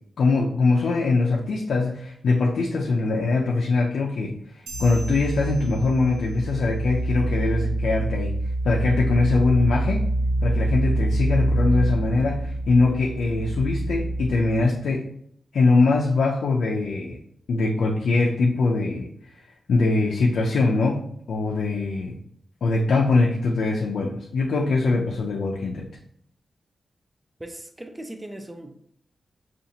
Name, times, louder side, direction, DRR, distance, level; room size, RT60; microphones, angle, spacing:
voice 1, 0.2-8.4 8.6-10.1 10.4-15.0 15.5-17.2 17.5-19.1 19.7-22.1 22.6-25.9, left 3 dB, 80° left, -1 dB, 0.5 m, -22 dB
sound 1, 4.7-14.6, right 1 dB, 55° right, 1.3 m, -26 dB
sound 2, 4.7-6.5, right 2 dB, 85° right, 0.7 m, -43 dB
voice 2, 27.4-28.7, right 1 dB, 15° right, 5 dB, 0.4 m, -38 dB
5.1 x 2.5 x 2.7 m, 0.68 s
wide cardioid pair, 160°, 0 cm